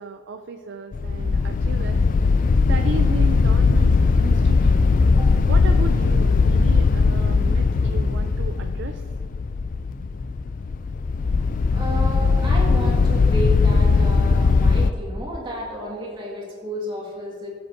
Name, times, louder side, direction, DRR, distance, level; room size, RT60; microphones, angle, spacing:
voice 1, 0.0-2.0 2.7-4.9 5.4-9.0, right 4 dB, 60° right, 6 dB, 0.4 m, -34 dB
sound 1, 0.9-14.9, left 4 dB, 40° left, 0.3 m, -19 dB
voice 2, 11.7-17.5, equal, 25° right, -4 dB, 2.0 m, -32 dB
17.5 x 7.9 x 2.7 m, 2.1 s
head